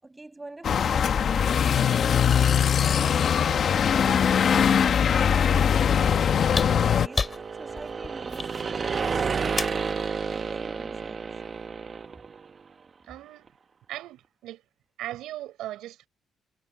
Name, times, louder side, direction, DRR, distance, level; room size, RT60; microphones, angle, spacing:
voice 1, 0.0-4.4 5.1-11.2, right 2 dB, 15° right, 7.7 m, -45 dB
sound 1, 0.6-7.1, left 8 dB, 55° left, 1.3 m, -21 dB
sound 2, 5.7-12.5, right 5 dB, 40° right, 1.0 m, -32 dB
sound 3, 6.5-9.9 11.3-11.4, left 4 dB, 35° left, 2.5 m, -32 dB
voice 2, 13.1-13.5 13.9-14.6 15.0-16.1, right 14 dB, 90° right, 4.7 m, -38 dB
cardioid pair, 90°, 0 cm